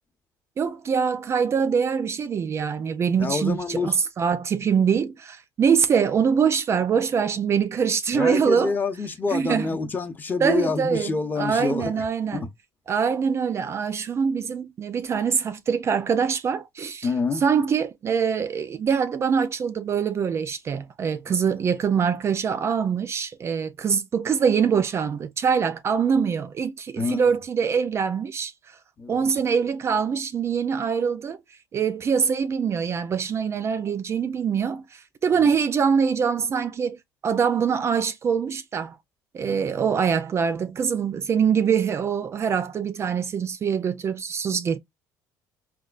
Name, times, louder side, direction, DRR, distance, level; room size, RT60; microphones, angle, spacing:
voice 1, 0.6-8.7 9.3-9.8 10.4-12.4 12.9-17.1 17.4-28.5 29.1-31.4 31.7-37.0 37.2-39.0 39.3-44.8, right 6 dB, 35° right, 0.4 m, -24 dB
voice 2, 3.2-4.0 8.1-12.0 12.3-12.5 17.0-17.4 21.5-21.6 27.0-27.3 29.0-29.3 35.4-35.5 39.4-39.8, left 4 dB, 25° left, 0.7 m, -27 dB
4.2 x 2.2 x 2.4 m
cardioid pair, 105°, 8 cm